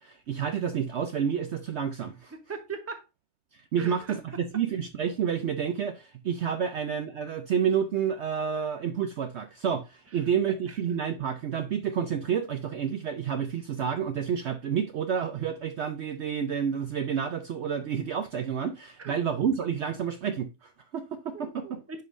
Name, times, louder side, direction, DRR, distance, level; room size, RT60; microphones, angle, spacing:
voice 1, 0.0-2.3 3.5-21.8, right 7 dB, 60° right, 0.8 m, -29 dB
voice 2, 2.3-3.0 3.8-4.6 10.1-10.8 19.0-19.2 21.3-22.0, right 4 dB, 10° right, 0.8 m, -41 dB
9.2 x 5.4 x 2.6 m
omnidirectional pair, 1.5 m